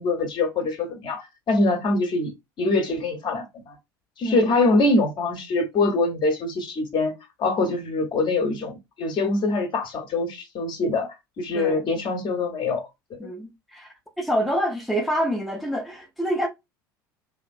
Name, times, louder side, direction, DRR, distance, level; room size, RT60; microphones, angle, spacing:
voice 1, 0.0-2.3 2.6-3.7 4.2-11.1 11.4-12.9 13.2-13.3, left 2 dB, 40° left, 0.9 m, -24 dB
voice 2, 13.2-16.5, equal, ahead, 0.6 m, -27 dB
2.8 x 2.5 x 2.4 m
hypercardioid pair, 75°, 12 cm